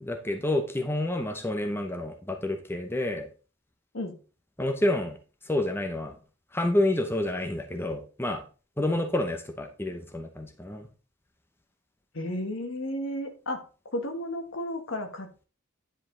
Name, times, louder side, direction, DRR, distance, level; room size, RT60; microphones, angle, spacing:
voice 1, 0.0-3.3 4.6-5.2 5.4-6.2 6.5-8.4 8.8-10.9, left 1 dB, 10° left, 4 dB, 0.7 m, -29 dB
voice 2, 12.1-13.6 13.9-15.5, left 1 dB, 60° left, 6 dB, 1.4 m, -33 dB
10.0 x 4.9 x 3.7 m, 0.35 s
head